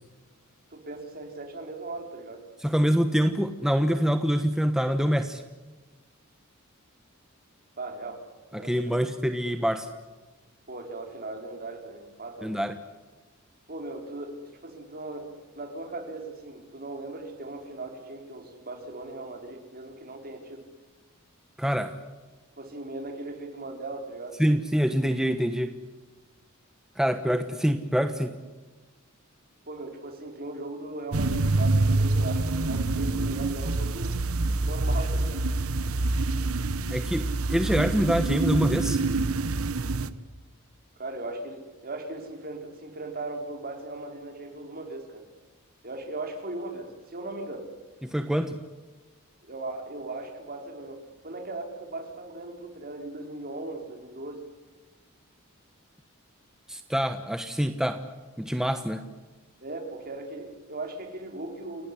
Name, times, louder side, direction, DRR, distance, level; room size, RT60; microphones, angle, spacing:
voice 1, 0.7-2.5 7.8-8.2 8.5-9.0 10.7-12.6 13.7-20.7 22.6-24.4 29.7-34.2 34.6-35.4 41.0-45.3 45.8-47.7 49.4-54.5 59.6-61.9, right 2 dB, 45° right, 4 dB, 4.6 m, -38 dB
voice 2, 2.6-5.4 8.5-9.9 12.4-12.7 21.6-21.9 24.4-25.8 27.0-28.4 36.9-39.0 48.0-48.6 56.7-58.0 58.4-59.0, equal, 5° right, 7 dB, 1.1 m, -25 dB
sound 1, 31.1-40.1, right 2 dB, 80° right, 1.3 m, -26 dB
29.5 x 18.0 x 10.0 m, 1.2 s
head